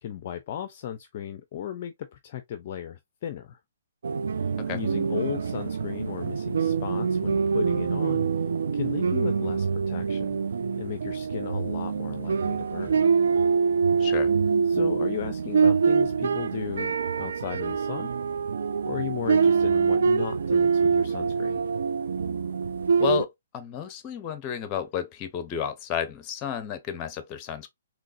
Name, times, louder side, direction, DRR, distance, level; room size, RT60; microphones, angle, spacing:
voice 1, 0.0-3.6 4.3-8.3 8.7-10.4 10.8-13.0 14.7-18.1 18.9-21.6, left 10 dB, 45° left, 0.5 m, -36 dB
sound 1, 4.0-23.2, right 5 dB, 65° right, 0.3 m, -25 dB
voice 2, 14.0-14.3 23.0-27.7, left 9 dB, 25° left, 0.8 m, -32 dB
3.8 x 3.1 x 2.6 m
figure-of-eight pair, 130°, 0 cm